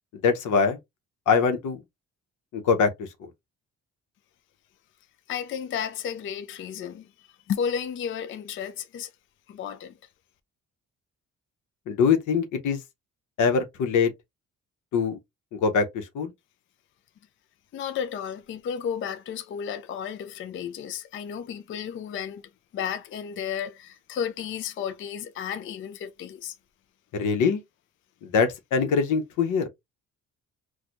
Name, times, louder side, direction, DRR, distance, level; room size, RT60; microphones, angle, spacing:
voice 1, 0.1-0.8 1.3-1.8 2.5-3.3 11.9-12.8 13.4-14.1 14.9-15.2 15.5-16.3 27.1-27.6 28.2-29.7, left 5 dB, 80° left, 0.9 m, -23 dB
voice 2, 5.3-9.1 9.5-9.9 17.7-22.4 22.7-26.6, left 8 dB, 45° left, 0.4 m, -33 dB
4.3 x 2.3 x 2.5 m
cardioid pair, 90°, 30 cm